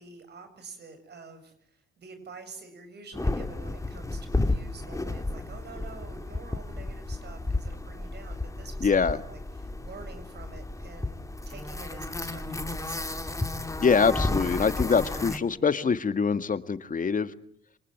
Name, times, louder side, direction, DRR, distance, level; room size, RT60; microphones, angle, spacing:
voice 1, 0.0-13.3, right 4 dB, 60° right, 9 dB, 7.6 m, -47 dB
sound 1, 3.1-15.4, left 2 dB, 15° left, 2.3 m, -32 dB
voice 2, 8.8-9.2 13.8-17.3, left 5 dB, 40° left, 12 dB, 1.8 m, -24 dB
27.0 x 20.0 x 9.2 m, 0.64 s
cardioid pair, 75°, 20 cm